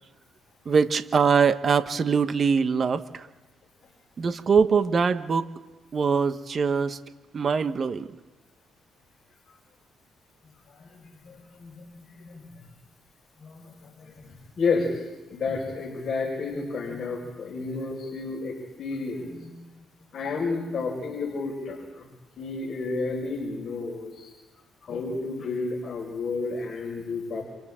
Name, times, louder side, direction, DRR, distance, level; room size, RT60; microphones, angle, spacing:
voice 1, 0.6-3.3 4.2-5.5 5.9-7.0 7.3-8.1, right 5 dB, 45° right, 9 dB, 1.2 m, -23 dB
voice 2, 10.8-12.6 13.4-19.5 20.1-22.1 22.4-24.3 24.9-27.4, left 4 dB, 50° left, -1 dB, 5.3 m, -31 dB
30.0 x 27.0 x 3.8 m, 1.1 s
cardioid pair, 90°, 0 cm